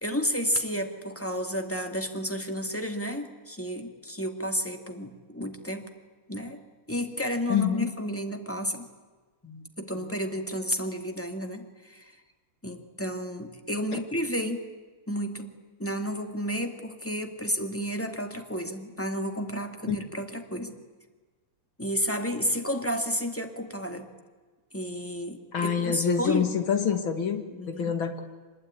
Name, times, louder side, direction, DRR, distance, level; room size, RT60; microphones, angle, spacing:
voice 1, 0.0-5.9 6.3-6.6 6.9-8.9 9.4-12.1 12.6-14.6 15.1-20.8 21.8-24.1 24.7-26.5 27.5-28.0, equal, 5° left, 5 dB, 2.1 m, -31 dB
voice 2, 7.5-7.9 19.9-20.0 25.5-28.2, left 7 dB, 70° left, 7 dB, 2.8 m, -26 dB
25.5 x 20.0 x 9.8 m, 1.4 s
omnidirectional pair, 2.3 m